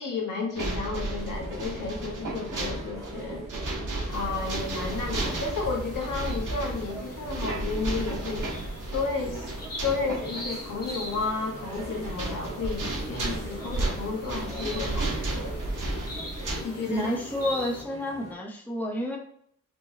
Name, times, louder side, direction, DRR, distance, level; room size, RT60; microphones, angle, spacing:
voice 1, 0.0-3.4 4.1-8.5 8.9-15.6 16.6-17.2, left 4 dB, 75° left, -1 dB, 1.6 m, -32 dB
sound 1, 0.5-16.6, right 2 dB, 75° right, 1.5 m, -33 dB
sound 2, 1.1-18.3, right 2 dB, 20° right, 1.4 m, -43 dB
sound 3, 4.1-17.8, equal, 50° left, 1.7 m, -42 dB
voice 2, 16.9-19.2, left 1 dB, 5° left, -2 dB, 0.8 m, -30 dB
5.4 x 3.4 x 2.8 m, 0.67 s
wide cardioid pair, 150°, 32 cm